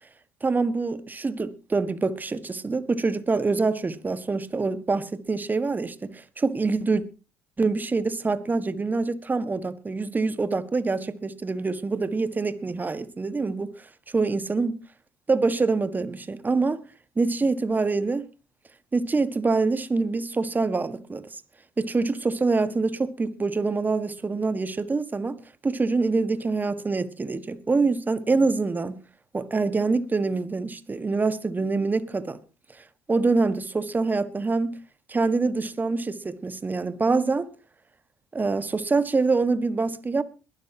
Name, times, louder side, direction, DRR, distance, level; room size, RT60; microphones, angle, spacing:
voice 1, 0.4-7.0 7.6-13.9 14.1-14.8 15.3-16.8 17.2-18.2 18.9-21.4 21.8-25.4 25.6-29.0 29.3-32.4 33.1-34.8 35.1-37.5 38.3-40.2, right 3 dB, 25° right, 1.5 m, -25 dB
22.0 x 12.0 x 2.9 m
hypercardioid pair, 65°, 8 cm